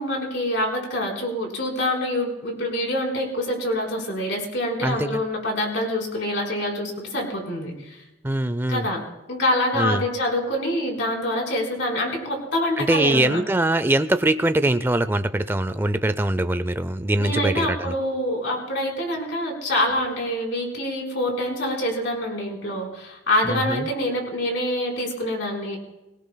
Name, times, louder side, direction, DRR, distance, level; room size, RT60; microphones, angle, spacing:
voice 1, 0.0-8.0 8.7-9.0 9.3-13.4 17.2-25.8, left 1 dB, 65° left, 0 dB, 4.0 m, -26 dB
voice 2, 4.8-5.2 8.2-8.9 9.8-10.0 12.8-17.9 23.4-23.9, right 1 dB, 10° right, 12 dB, 0.4 m, -22 dB
23.0 x 17.0 x 2.2 m, 0.96 s
head